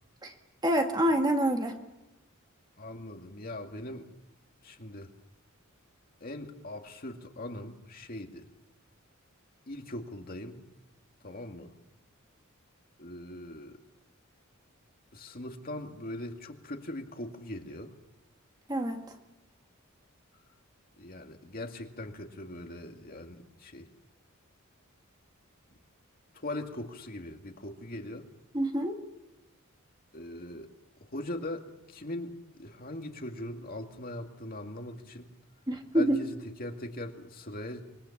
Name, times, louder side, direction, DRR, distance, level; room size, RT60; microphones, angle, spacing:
voice 1, 0.6-1.8 18.7-19.0 28.5-29.0 35.7-36.2, right 1 dB, 20° right, 4 dB, 1.9 m, -26 dB
voice 2, 2.8-4.1 4.6-5.1 6.2-8.5 9.7-10.6 11.2-11.7 13.0-13.8 15.1-17.9 21.0-23.9 26.3-28.2 30.1-30.7 31.1-35.3 35.9-37.9, left 1 dB, 45° left, 4 dB, 2.2 m, -40 dB
25.5 x 22.5 x 7.2 m, 0.96 s
head